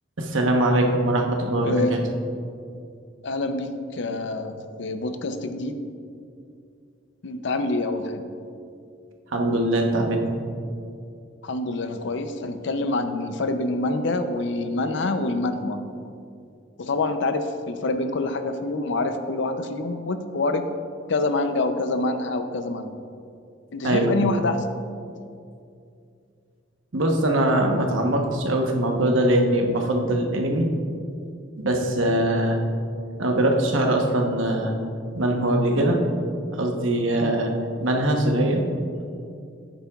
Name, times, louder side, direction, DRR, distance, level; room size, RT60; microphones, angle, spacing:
voice 1, 0.2-2.0 9.3-10.3 23.8-24.1 26.9-30.7 31.6-32.6 33.2-34.7 35.2-36.0 36.5-37.5 37.8-38.6, right 1 dB, 80° right, 2 dB, 1.0 m, -22 dB
voice 2, 1.6-2.0 3.2-5.8 7.2-8.2 11.4-15.8 16.8-20.7 21.1-23.0 23.7-24.6 31.7-31.8 37.2-37.3, left 2 dB, 65° left, 9 dB, 0.6 m, -26 dB
11.0 x 9.0 x 2.4 m, 2.4 s
head